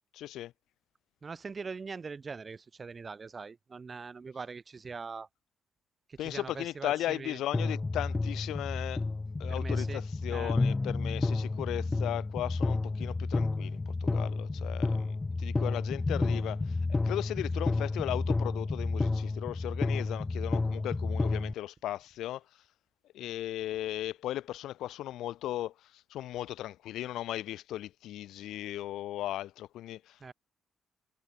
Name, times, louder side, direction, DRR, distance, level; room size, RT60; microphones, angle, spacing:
voice 1, 0.1-0.5 6.2-9.0 9.4-16.8 17.0-22.4 23.1-30.3, left 13 dB, 85° left, 1.4 m, -37 dB
voice 2, 1.2-5.3 6.1-7.4 9.5-10.0 10.3-10.5 30.2-30.3, right 5 dB, 35° right, 2.0 m, -42 dB
sound 1, 7.5-21.5, left 3 dB, 20° left, 1.2 m, -31 dB
cardioid pair, 90°, 0 cm